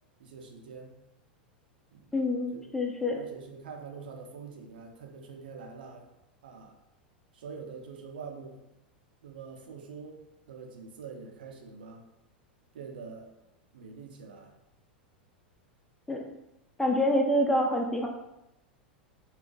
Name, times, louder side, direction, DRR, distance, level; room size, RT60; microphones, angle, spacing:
voice 1, 0.2-1.0 1.9-2.1 2.5-2.7 3.2-6.1 6.4-6.7 7.3-8.6 9.2-10.2 10.5-12.0 12.7-13.3 13.7-14.5, right 5 dB, 70° right, 2 dB, 0.4 m, -45 dB
voice 2, 2.1-3.2 16.1-16.2 16.8-18.1, left 1 dB, 5° left, 0 dB, 0.3 m, -26 dB
2.4 x 2.4 x 2.2 m, 0.88 s
figure-of-eight pair, 90°, 5 cm